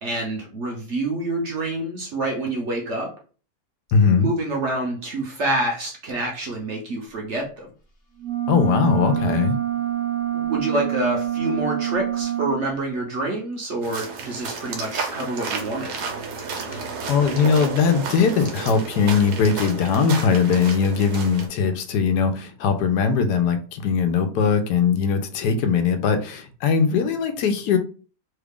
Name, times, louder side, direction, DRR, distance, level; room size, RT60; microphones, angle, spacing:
voice 1, 0.0-3.1 4.2-7.7 10.3-15.9, right 2 dB, 55° right, 0.9 m, -27 dB
voice 2, 3.9-4.3 8.5-9.6 16.7-27.8, left 6 dB, 80° left, 1.1 m, -20 dB
sound 1, 8.2-12.6, right 11 dB, 40° left, 1.1 m, -26 dB
sound 2, 13.8-21.5, right 5 dB, 75° right, 1.3 m, -32 dB
3.2 x 2.4 x 3.5 m
omnidirectional pair, 1.8 m